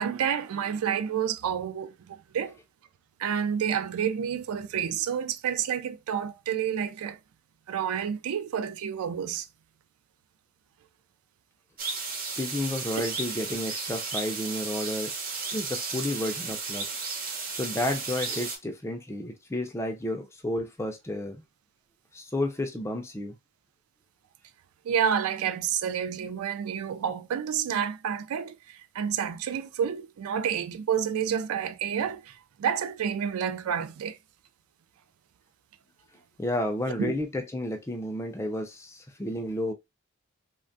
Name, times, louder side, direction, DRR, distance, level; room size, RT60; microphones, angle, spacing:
voice 1, 0.0-2.6 3.2-7.2 7.7-9.5 24.8-34.2 37.0-37.1, right 8 dB, 75° right, 0.3 m, -29 dB
sound 1, 11.8-18.6, right 4 dB, 40° right, 0.7 m, -34 dB
voice 2, 12.4-15.1 15.5-16.9 17.5-21.4 22.1-23.3 36.4-39.7, left 1 dB, 10° left, 0.3 m, -31 dB
3.2 x 2.2 x 2.5 m
head